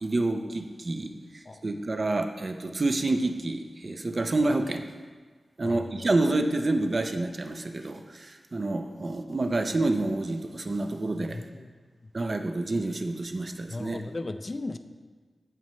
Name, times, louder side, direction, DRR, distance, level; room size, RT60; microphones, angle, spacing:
voice 1, 0.0-4.9 5.6-11.4 12.1-14.0, right 2 dB, 40° right, 7 dB, 0.5 m, -28 dB
voice 2, 5.6-6.1 11.3-11.7 13.7-14.8, left 2 dB, 40° left, 10 dB, 0.4 m, -36 dB
14.0 x 5.3 x 3.2 m, 1.4 s
wide cardioid pair, 125°, 0 cm